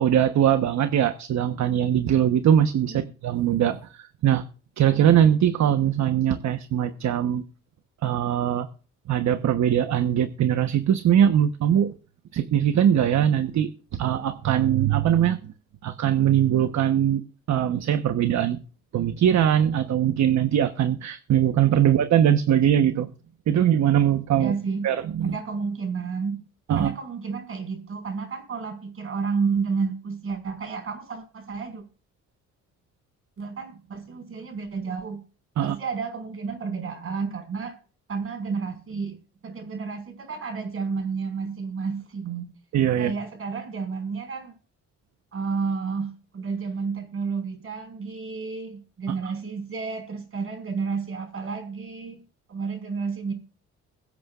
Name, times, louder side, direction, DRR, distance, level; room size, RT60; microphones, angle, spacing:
voice 1, 0.0-4.4 4.8-7.4 8.0-8.7 9.1-11.9 12.3-15.5 15.8-17.2 17.5-18.6 18.9-23.1 23.5-24.5 24.8-25.3 26.7-26.9 35.6-35.7 42.7-43.1, right 10 dB, 65° right, 9 dB, 1.1 m, -21 dB
voice 2, 24.4-24.9 25.2-26.4 26.8-31.8 33.4-35.2 35.6-37.8 38.1-39.2 39.4-42.5 43.0-44.5 45.3-52.2 52.5-53.3, right 5 dB, 45° right, 5 dB, 5.3 m, -31 dB
22.5 x 8.6 x 2.5 m, 0.38 s
cardioid pair, 90°, 30 cm